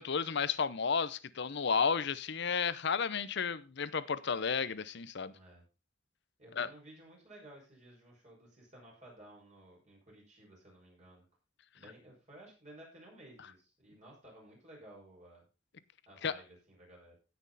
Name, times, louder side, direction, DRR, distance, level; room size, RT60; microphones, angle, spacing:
voice 1, 0.0-5.3 6.6-6.7 16.2-16.3, left 6 dB, 65° left, 0.7 m, -32 dB
voice 2, 5.2-5.7 6.4-11.2 11.7-15.4 16.1-17.2, right 1 dB, 40° right, 5.7 m, -56 dB
16.5 x 6.2 x 4.1 m
head